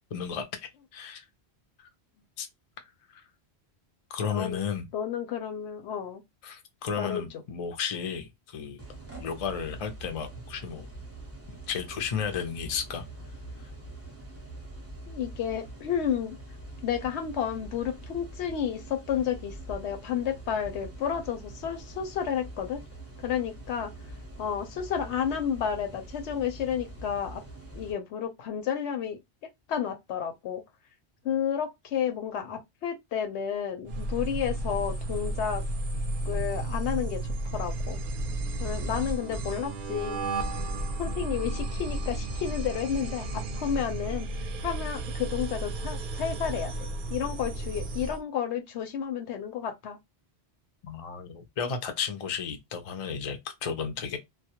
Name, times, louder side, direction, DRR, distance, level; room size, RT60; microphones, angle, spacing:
voice 1, 0.1-1.2 1.8-1.9 2.4-2.5 3.1-3.2 4.1-4.9 6.4-8.8 9.1-10.9 11.7-13.0 50.8-54.2, left 7 dB, 45° left, 0.4 m, -33 dB
voice 2, 4.3-6.2 7.0-7.4 15.1-16.4 16.8-22.8 23.2-23.9 24.4-27.4 27.8-29.2 29.7-30.6 31.2-35.6 36.3-37.2 37.5-38.0 38.6-40.2 41.0-50.0, left 8 dB, 80° left, 0.9 m, -31 dB
sound 1, 8.8-27.9, right 2 dB, 15° right, 0.5 m, -44 dB
sound 2, 33.9-48.2, right 2 dB, 60° right, 0.6 m, -33 dB
2.2 x 2.0 x 2.8 m
omnidirectional pair, 1.1 m